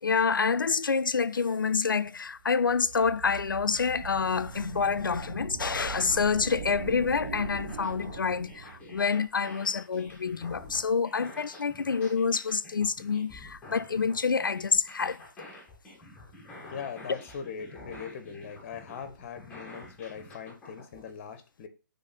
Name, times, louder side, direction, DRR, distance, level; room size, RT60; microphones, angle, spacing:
voice 1, 0.0-15.2, left 5 dB, 85° left, 0.4 m, -27 dB
sound 1, 2.4-8.9, right 6 dB, 45° right, 0.8 m, -41 dB
sound 2, 6.9-21.1, left 2 dB, 10° left, 1.7 m, -49 dB
voice 2, 16.7-21.7, left 7 dB, 40° left, 1.1 m, -41 dB
7.8 x 3.5 x 4.2 m
figure-of-eight pair, 140°, 11 cm